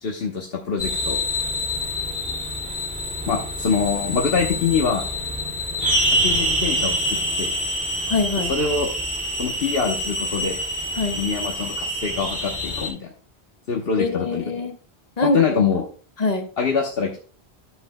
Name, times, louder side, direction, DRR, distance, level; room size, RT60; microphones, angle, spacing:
voice 1, 0.0-1.2 3.3-5.1 6.2-7.0 7.4-7.6 8.5-8.9 9.4-10.6 11.2-13.1 13.7-14.4 15.2-15.8 16.6-17.2, left 5 dB, 65° left, 1 dB, 1.3 m, -24 dB
sound 1, 0.8-12.9, equal, 5° right, 2.3 m, -26 dB
voice 2, 8.1-8.5 11.0-11.2 14.0-14.8 15.2-15.4 16.2-16.5, left 3 dB, 40° left, 6 dB, 1.0 m, -23 dB
12.5 x 7.1 x 2.2 m, 0.42 s
omnidirectional pair, 1.1 m